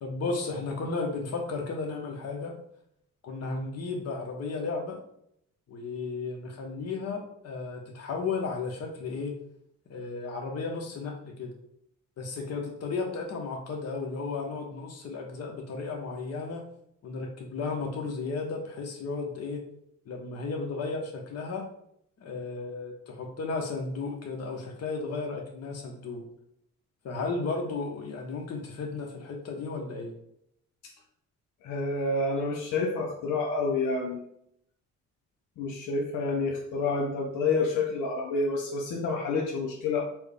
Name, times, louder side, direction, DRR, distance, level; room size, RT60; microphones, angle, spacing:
voice 1, 0.0-2.5 3.2-5.0 5.7-9.4 9.9-11.5 12.2-16.6 17.0-19.6 20.1-21.7 22.2-26.3 27.0-30.2, left 4 dB, 55° left, 1 dB, 1.0 m, -34 dB
voice 2, 31.6-34.2 35.6-40.0, left 3 dB, 90° left, 0 dB, 0.7 m, -28 dB
4.4 x 2.2 x 3.5 m, 0.73 s
cardioid pair, 90°, 30 cm